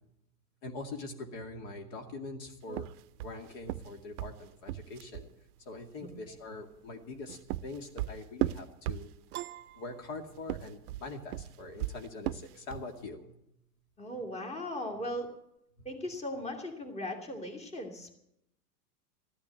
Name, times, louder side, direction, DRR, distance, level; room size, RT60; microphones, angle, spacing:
voice 1, 0.6-2.9 3.2-5.3 5.7-9.1 9.8-13.3, left 2 dB, 50° left, 4 dB, 2.4 m, -43 dB
sound 1, 2.7-5.3 7.0-9.5 10.3-13.0, right 14 dB, 70° right, 0.6 m, -36 dB
Piano, 9.3-10.9, right 13 dB, 25° right, 0.7 m, -45 dB
voice 2, 14.0-15.3 15.8-18.2, left 1 dB, 15° left, 4 dB, 2.4 m, -38 dB
14.0 x 9.7 x 9.4 m, 0.79 s
hypercardioid pair, 110°, 48 cm